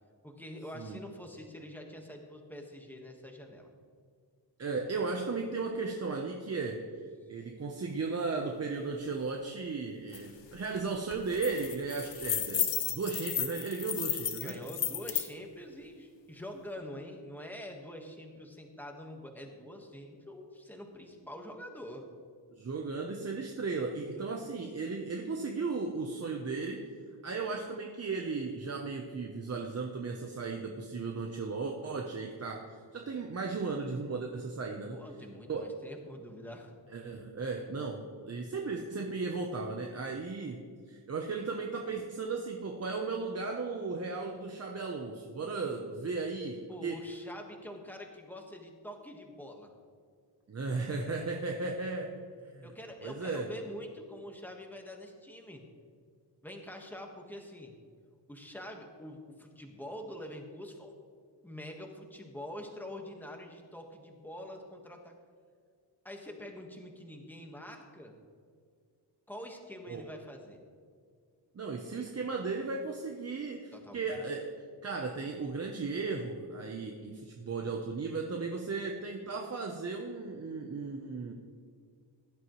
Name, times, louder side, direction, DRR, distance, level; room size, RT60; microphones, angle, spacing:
voice 1, 0.2-3.7 7.2-7.3 14.4-22.0 24.2-24.3 34.9-36.7 46.7-49.7 52.6-55.6 56.4-57.7 58.3-61.0 61.4-65.1 66.0-68.1 69.3-70.6 73.7-74.2, left 1 dB, 5° left, 2 dB, 1.4 m, -45 dB
voice 2, 4.6-6.9 7.3-14.6 22.5-26.9 27.2-35.0 35.5-35.7 36.9-47.0 50.5-52.2 52.5-52.7 53.0-53.5 69.9-70.0 71.5-74.5 74.8-81.3, right 4 dB, 35° right, 2 dB, 0.8 m, -36 dB
sound 1, 10.1-10.2 10.6-10.8 11.1-15.3, left 9 dB, 80° left, 1.1 m, -33 dB
16.0 x 11.5 x 3.1 m, 2.1 s
wide cardioid pair, 160°, 42 cm